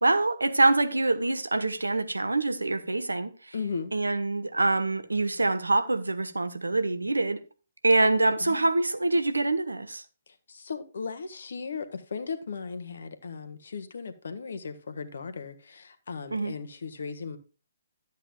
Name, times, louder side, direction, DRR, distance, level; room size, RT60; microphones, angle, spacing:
voice 1, 0.0-3.3 3.9-7.4 7.8-10.0 16.3-16.5, right 2 dB, 80° right, 1.0 m, -25 dB
voice 2, 3.5-3.9 8.4-8.6 10.3-17.4, left 5 dB, 60° left, 1.4 m, -37 dB
12.5 x 8.2 x 2.3 m
figure-of-eight pair, 130°, 0 cm